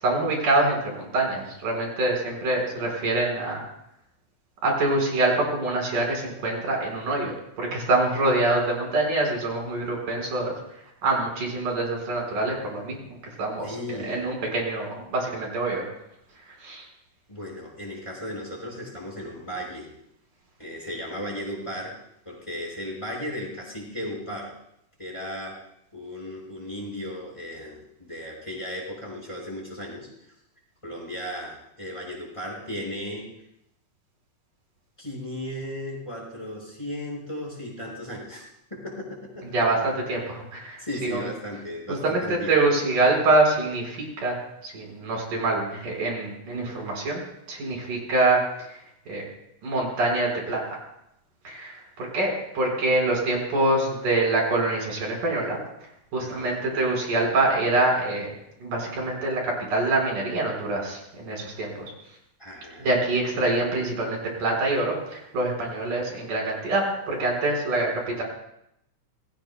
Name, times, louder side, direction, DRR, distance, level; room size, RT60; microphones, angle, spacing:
voice 1, 0.0-3.6 4.6-10.6 11.0-13.0 13.4-15.8 16.6-16.8 39.5-41.3 42.0-47.2 47.5-48.4 48.7-48.8 49.1-49.2 49.6-50.8 51.4-55.6 56.1-58.3 58.6-61.8 62.8-68.2, right 2 dB, 85° right, -1 dB, 6.3 m, -25 dB
voice 2, 13.6-14.2 17.3-19.9 20.6-21.9 22.3-24.5 25.0-25.6 25.9-30.1 30.8-33.3 35.0-39.5 40.8-42.6 56.2-56.6 62.4-63.4, left 1 dB, 10° left, -3 dB, 5.4 m, -36 dB
26.5 x 21.0 x 2.2 m, 0.81 s
omnidirectional pair, 3.7 m